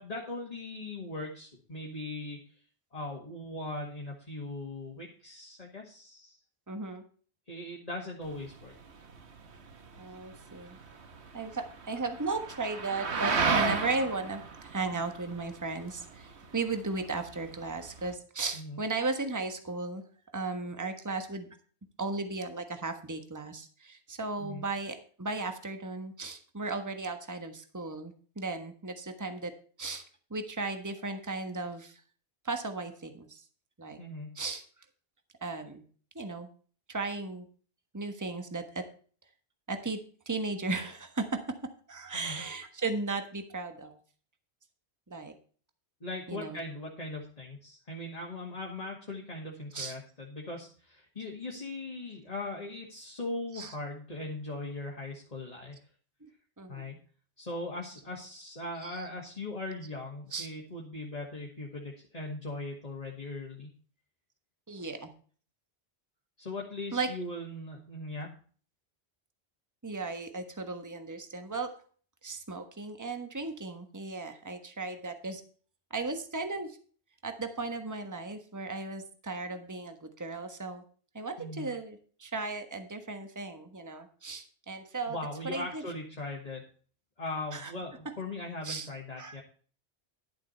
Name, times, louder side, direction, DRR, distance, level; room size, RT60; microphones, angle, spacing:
voice 1, 0.0-2.4 2.9-6.4 7.5-8.7 18.5-18.8 24.4-24.6 34.0-34.3 42.1-42.4 46.0-55.8 56.7-57.0 57.4-63.7 66.4-68.3 81.4-81.7 85.1-86.6 87.2-89.4, left 2 dB, 35° left, -2 dB, 2.1 m, -39 dB
voice 2, 6.7-7.0 10.0-10.8 11.3-20.0 20.3-21.5 22.0-29.5 29.8-30.0 30.3-32.0 32.4-33.4 33.8-34.0 34.3-34.6 35.4-35.8 36.1-36.5 36.9-37.5 37.9-38.8 39.7-40.0 40.2-41.4 41.9-44.0 45.1-45.3 46.3-46.6 49.7-49.9 53.5-53.7 56.6-56.9 58.8-59.1 60.3-60.5 64.7-65.1 66.9-67.1 69.8-71.7 72.2-75.4 75.9-76.8 77.2-80.8 81.1-85.2 85.4-85.8 87.5-87.7 88.6-88.9 89.2-89.4, right 3 dB, 15° right, 7 dB, 1.3 m, -36 dB
sound 1, 8.2-18.1, right 5 dB, 85° right, 1.5 m, -35 dB
12.0 x 7.4 x 4.3 m, 0.42 s
omnidirectional pair, 1.1 m